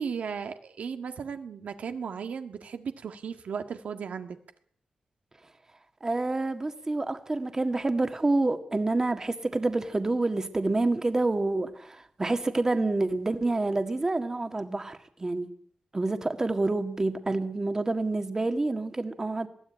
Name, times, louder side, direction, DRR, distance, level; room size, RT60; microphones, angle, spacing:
voice 1, 0.0-4.4, right 6 dB, 85° right, 1.7 m, -35 dB
voice 2, 6.0-15.5 15.9-19.5, right 2 dB, 25° right, 1.7 m, -28 dB
21.0 x 15.0 x 9.8 m
wide cardioid pair, 120°, 2 cm